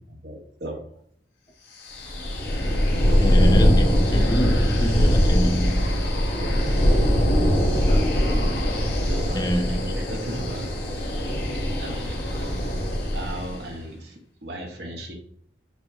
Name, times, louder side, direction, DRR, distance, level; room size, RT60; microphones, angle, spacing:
voice 1, 0.1-0.8 2.1-2.2 7.9-8.5 9.0-10.7 11.8-12.5 13.1-15.1, right 1 dB, 65° right, 1.1 m, -36 dB
sound 1, 1.8-13.6, equal, 75° left, 1.5 m, -21 dB
voice 2, 3.2-6.3 9.3-10.1, equal, 20° left, 0.4 m, -26 dB
6.0 x 2.0 x 3.7 m
head